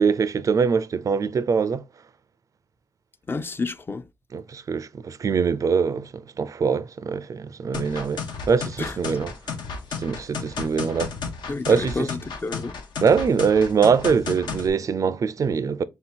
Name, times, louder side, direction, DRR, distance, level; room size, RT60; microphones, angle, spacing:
voice 1, 0.0-1.8 4.3-9.3 10.0-11.1 11.7-12.1 13.0-15.8, right 6 dB, 50° right, 0.4 m, -23 dB
voice 2, 3.3-4.1 8.8-9.0 11.5-12.8, left 3 dB, 30° left, 0.4 m, -30 dB
sound 1, 7.7-14.7, left 5 dB, 85° left, 0.8 m, -33 dB
3.5 x 2.8 x 4.3 m
cardioid pair, 75°, 7 cm